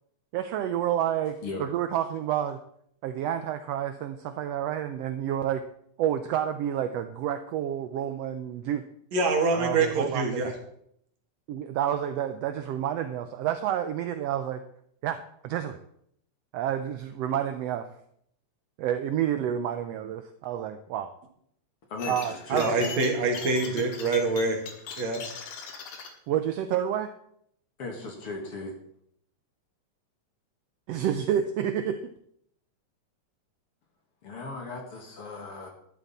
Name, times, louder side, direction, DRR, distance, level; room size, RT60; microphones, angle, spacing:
voice 1, 0.3-2.6 3.0-5.6 6.0-8.8 9.5-10.6 11.5-14.6 15.0-15.2 15.4-15.8 16.5-17.9 18.8-21.1 22.1-22.7 23.8-23.9 26.3-27.1 30.9-32.1, right 10 dB, 80° right, 9 dB, 1.4 m, -29 dB
voice 2, 9.1-10.5 22.5-24.6 25.0-25.2, right 3 dB, 65° right, 3 dB, 3.0 m, -25 dB
voice 3, 21.9-22.9 27.8-28.7 34.2-35.7, left 3 dB, 50° left, 2 dB, 2.4 m, -37 dB
sound 1, 22.0-26.1, left 6 dB, 85° left, 3.0 m, -40 dB
12.5 x 11.5 x 4.2 m, 0.70 s
omnidirectional pair, 3.5 m